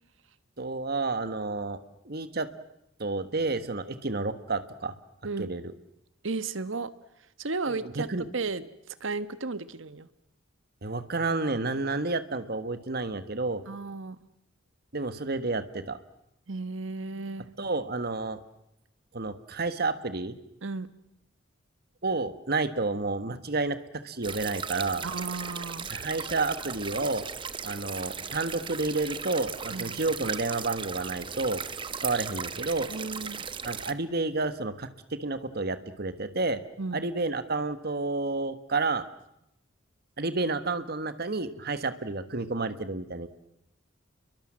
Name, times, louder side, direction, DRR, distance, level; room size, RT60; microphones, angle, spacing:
voice 1, 0.6-1.8 2.0-2.5 3.0-4.9 5.4-5.7 7.7-8.3 10.8-13.6 14.9-16.0 17.6-18.4 19.1-20.3 22.0-23.8 24.0-25.0 25.9-27.2 27.6-31.6 32.0-32.9 33.6-36.6 36.9-39.0 40.2-43.3, right 3 dB, 50° right, 11 dB, 1.4 m, -30 dB
voice 2, 6.2-6.9 7.4-10.1 13.7-14.2 16.5-17.5 20.6-20.9 25.0-25.9 29.7-30.0 32.9-33.5 36.8-37.1, right 3 dB, 75° right, 13 dB, 1.3 m, -34 dB
sound 1, 24.2-33.9, right 6 dB, 25° right, 1.0 m, -37 dB
29.5 x 23.0 x 7.6 m, 0.81 s
head